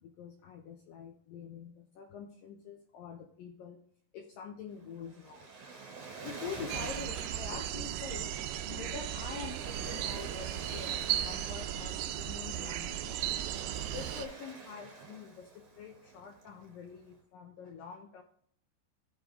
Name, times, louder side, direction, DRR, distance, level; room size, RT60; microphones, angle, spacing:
voice 1, 0.0-3.8 4.1-5.5 6.2-13.1 13.9-18.2, left 6 dB, 80° left, 2 dB, 2.0 m, -46 dB
Waves surf, 4.7-17.1, right 4 dB, 50° right, 3.4 m, -48 dB
sound 1, 6.7-14.3, right 11 dB, 80° right, 2.3 m, -36 dB
15.0 x 5.0 x 3.7 m, 0.63 s
omnidirectional pair, 5.1 m